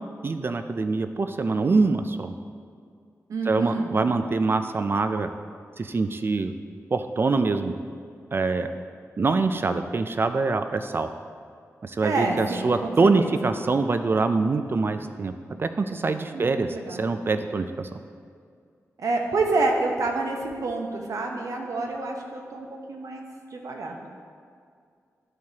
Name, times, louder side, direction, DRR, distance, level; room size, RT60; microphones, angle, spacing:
voice 1, 0.2-2.3 3.5-5.3 5.8-6.5 6.9-7.7 8.3-8.7 9.2-11.1 11.8-15.3 15.6-16.7 17.0-17.9, right 3 dB, 40° right, 9 dB, 0.3 m, -24 dB
voice 2, 3.3-3.9 12.0-12.7 13.0-13.5 16.3-17.0 19.0-23.2 23.5-24.0, right 3 dB, 75° right, 2 dB, 0.9 m, -28 dB
12.0 x 4.6 x 2.8 m, 2.2 s
wide cardioid pair, 80°, 6 cm